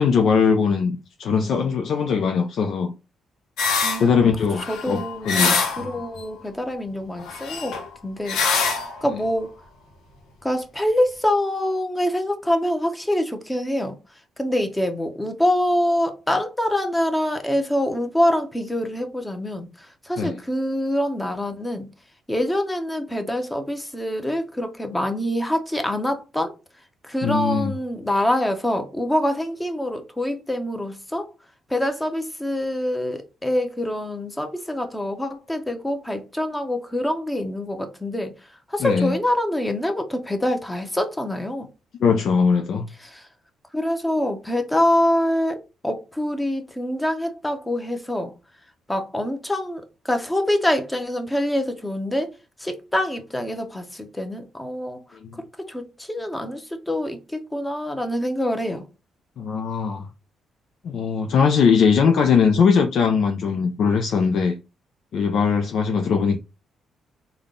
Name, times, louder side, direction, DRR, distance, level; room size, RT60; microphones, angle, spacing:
voice 1, 0.0-2.9 4.0-5.9 20.2-20.4 27.2-27.7 38.8-39.2 42.0-42.9 55.2-55.3 59.4-60.1 60.8-64.6 65.1-66.4, left 6 dB, 65° left, 0.5 m, -20 dB
sound 1, 3.6-4.1 4.5-6.2 7.2-8.0 8.3-9.0, left 5 dB, 90° left, 0.8 m, -24 dB
voice 2, 3.8-4.3 4.7-9.5 10.4-14.0 14.4-21.9 22.3-26.5 27.0-31.3 31.7-38.3 38.7-41.7 43.0-43.3 43.7-48.3 48.9-52.3 52.6-55.0 55.6-58.9, left 1 dB, 10° left, 0.8 m, -25 dB
3.6 x 2.2 x 3.7 m
cardioid pair, 90°, 0 cm